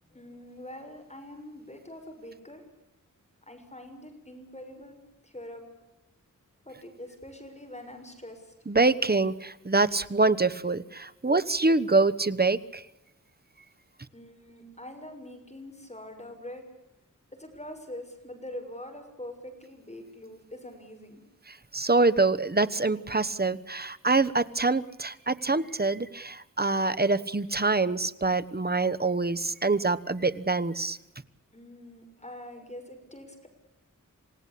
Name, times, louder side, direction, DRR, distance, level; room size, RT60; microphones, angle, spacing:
voice 1, 0.0-2.6 3.5-5.0 5.2-5.6 6.6-8.5 14.1-16.6 17.4-21.2 31.5-33.5, left 1 dB, 20° left, 5 dB, 6.3 m, -44 dB
voice 2, 8.7-12.8 21.5-31.0, right 3 dB, 30° right, 13 dB, 1.1 m, -25 dB
28.5 x 17.0 x 8.5 m, 0.89 s
wide cardioid pair, 75°, 32 cm